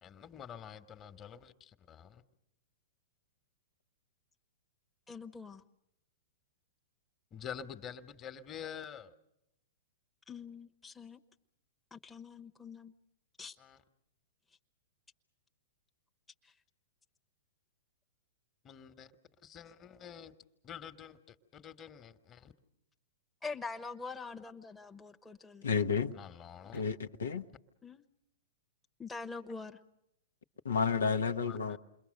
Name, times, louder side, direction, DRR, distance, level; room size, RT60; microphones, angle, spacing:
voice 1, 0.0-2.2 7.3-9.1 13.6-13.8 18.6-19.1 19.4-20.3 20.6-22.5 24.2-24.4 24.8-24.9 26.1-26.8 31.4-31.8, left 8 dB, 25° left, 10 dB, 1.5 m, -48 dB
voice 2, 5.1-5.6 10.3-11.2 11.9-12.9 13.4-13.6 16.4-16.5 23.4-25.7 27.8-28.0 29.0-29.8, left 4 dB, 10° left, 5 dB, 1.0 m, -44 dB
voice 3, 25.6-26.1 26.7-27.4 30.6-31.8, left 5 dB, 80° left, 7 dB, 1.0 m, -31 dB
28.5 x 22.0 x 6.6 m, 0.80 s
hypercardioid pair, 115°, 0 cm